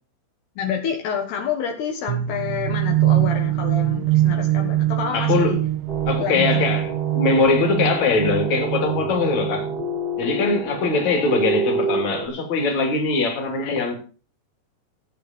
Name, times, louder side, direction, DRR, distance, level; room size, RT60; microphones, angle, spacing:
voice 1, 0.6-5.6 6.2-6.6, left 7 dB, 70° left, 3.5 m, -28 dB
sound 1, 2.1-9.8, right 14 dB, 85° right, 3.0 m, -23 dB
voice 2, 5.1-5.5 6.1-9.7 10.2-13.9, left 4 dB, 45° left, 3.9 m, -22 dB
sound 2, 5.9-12.3, right 2 dB, 35° right, 1.8 m, -28 dB
17.5 x 8.4 x 4.5 m
omnidirectional pair, 5.0 m